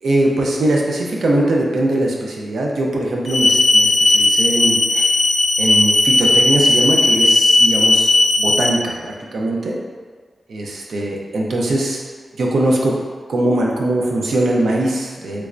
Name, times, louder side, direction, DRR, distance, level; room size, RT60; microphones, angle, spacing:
voice 1, 0.0-5.0 5.6-8.1 8.4-8.9 9.3-9.8 10.5-12.0 12.4-12.9 13.3-15.4, right 1 dB, 90° right, -2 dB, 0.5 m, -20 dB
sound 1, 3.3-8.7, left 2 dB, 40° left, 0.4 m, -15 dB
3.3 x 3.1 x 2.5 m, 1.5 s
wide cardioid pair, 135°, 0 cm